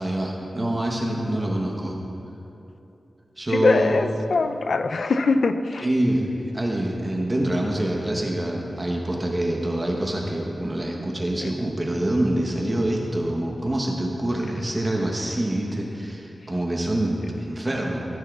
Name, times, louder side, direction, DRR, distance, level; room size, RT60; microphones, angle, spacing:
voice 1, 0.0-2.0 3.4-4.0 5.8-18.0, right 1 dB, 25° right, -1 dB, 1.0 m, -25 dB
voice 2, 3.5-5.9 11.4-11.5, left 3 dB, 75° left, 8 dB, 0.4 m, -22 dB
15.5 x 9.3 x 2.4 m, 2.9 s
wide cardioid pair, 100°, 0 cm